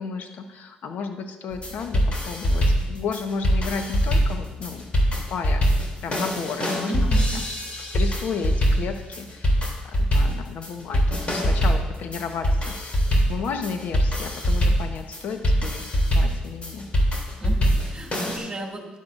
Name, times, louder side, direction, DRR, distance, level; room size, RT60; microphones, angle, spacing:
voice 1, 0.0-4.8 5.3-7.4 7.8-9.6 9.8-13.0 13.3-15.8 16.1-16.9, left 5 dB, 65° left, 6 dB, 1.2 m, -33 dB
sound 1, 1.5-18.4, equal, 40° left, 3.1 m, -23 dB
voice 2, 6.9-7.3 17.4-19.0, right 1 dB, 20° right, -1 dB, 2.5 m, -34 dB
12.5 x 10.5 x 2.6 m, 1.2 s
supercardioid pair, 70°, 3 cm